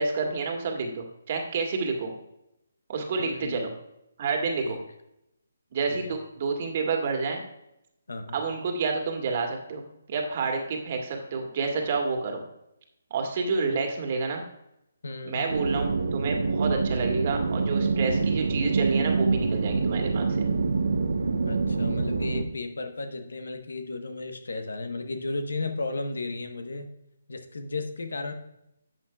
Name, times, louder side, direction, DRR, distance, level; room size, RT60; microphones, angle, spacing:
voice 1, 0.0-2.1 2.9-3.7 4.2-4.8 5.7-7.4 8.3-12.4 13.1-14.4 15.2-20.5, right 4 dB, 45° right, 3 dB, 1.8 m, -29 dB
voice 2, 3.2-3.7 4.6-4.8 5.9-6.1 8.1-8.4 15.0-15.5 21.4-26.9 27.3-28.3, left 3 dB, 75° left, 7 dB, 1.1 m, -34 dB
sound 1, 15.5-22.4, right 4 dB, 70° right, 0.8 m, -26 dB
11.5 x 7.7 x 2.3 m, 0.83 s
figure-of-eight pair, 145°, 0 cm